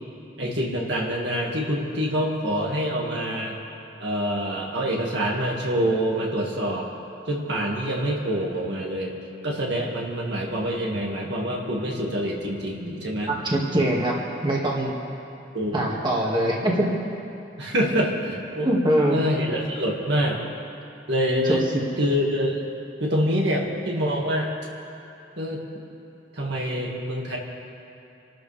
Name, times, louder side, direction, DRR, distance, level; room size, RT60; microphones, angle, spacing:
voice 1, 0.4-3.6 4.0-6.9 7.3-9.1 9.4-13.3 15.5-15.9 17.6-18.7 19.1-20.4 21.1-21.6 22.0-22.7 23.0-24.5 25.4-25.6 26.3-27.4, equal, 65° right, -2 dB, 2.2 m, -26 dB
voice 2, 13.3-14.2 14.4-14.9 15.7-17.0 18.6-19.2 21.4-21.8, right 1 dB, 25° right, -3 dB, 2.1 m, -23 dB
29.0 x 12.5 x 3.5 m, 2.8 s
head